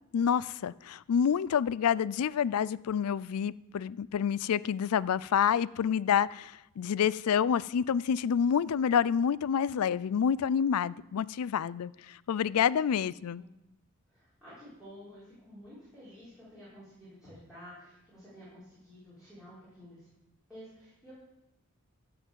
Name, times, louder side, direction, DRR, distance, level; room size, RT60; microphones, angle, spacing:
voice 1, 0.1-13.4, left 8 dB, 85° left, 0.4 m, -28 dB
voice 2, 14.1-20.1 20.5-21.1, equal, 5° right, 5.6 m, -51 dB
13.5 x 6.0 x 7.3 m
head